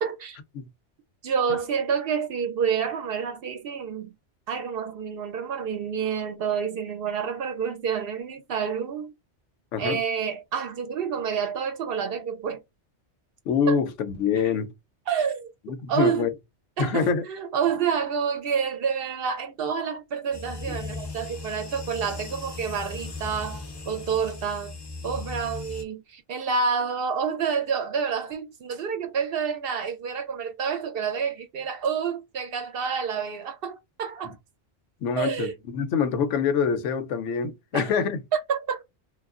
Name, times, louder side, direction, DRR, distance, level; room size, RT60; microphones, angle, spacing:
voice 1, 0.0-0.4 1.2-4.1 4.5-9.1 9.8-12.6 13.7-13.8 15.1-15.5 15.9-16.3 16.8-24.8 25.0-34.4 35.2-35.5 37.7-38.0 38.3-38.8, right 6 dB, 65° right, 0.7 m, -28 dB
voice 2, 13.5-14.7 15.7-16.3 16.8-17.2 35.0-38.2, left 6 dB, 85° left, 0.9 m, -25 dB
sound 1, 20.3-25.8, left 3 dB, 35° left, 0.4 m, -37 dB
3.1 x 2.2 x 2.4 m
omnidirectional pair, 1.2 m